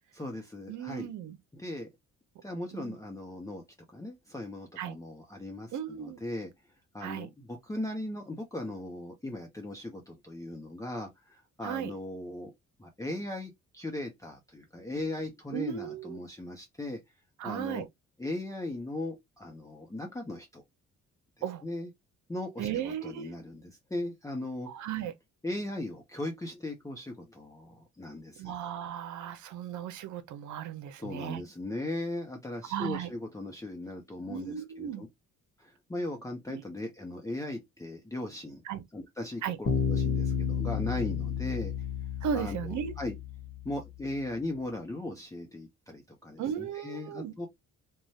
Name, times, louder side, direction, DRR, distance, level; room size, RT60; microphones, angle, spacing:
voice 1, 0.1-1.1 1.5-1.9 2.4-3.6 3.9-6.5 6.9-12.5 12.8-17.0 17.4-17.9 18.2-20.6 21.6-21.9 22.3-24.7 25.4-28.5 31.0-35.1 35.6-38.6 38.9-41.7 42.3-43.1 43.6-47.5, left 1 dB, 10° left, 0.8 m, -38 dB
voice 2, 0.7-1.4 2.7-3.0 4.8-5.0 5.7-6.2 7.0-7.3 11.6-11.9 15.5-16.2 17.4-17.9 21.4-21.6 22.6-23.3 24.6-25.1 28.4-31.4 32.7-33.1 34.3-35.0 36.5-36.6 38.7-38.8 39.4-39.6 42.2-43.0 46.4-47.3, right 9 dB, 75° right, 0.7 m, -36 dB
Bass guitar, 39.7-43.4, left 7 dB, 45° left, 1.0 m, -31 dB
2.6 x 2.2 x 3.1 m
cardioid pair, 90°, 30 cm